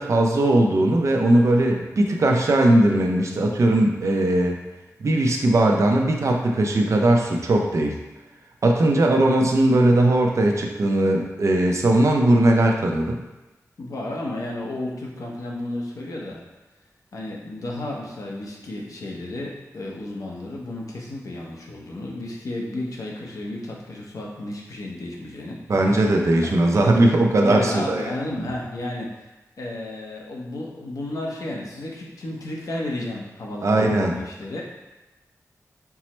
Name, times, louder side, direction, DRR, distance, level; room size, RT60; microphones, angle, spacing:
voice 1, 0.0-4.6 5.0-8.0 8.6-13.2 25.7-28.1 33.6-34.2, right 1 dB, 55° right, 2 dB, 0.5 m, -19 dB
voice 2, 13.8-16.4 17.1-25.6 25.9-26.1 27.3-29.3 29.6-34.6, left 1 dB, 75° left, -2 dB, 0.7 m, -32 dB
4.5 x 2.0 x 4.2 m, 1.1 s
wide cardioid pair, 125°, 6 cm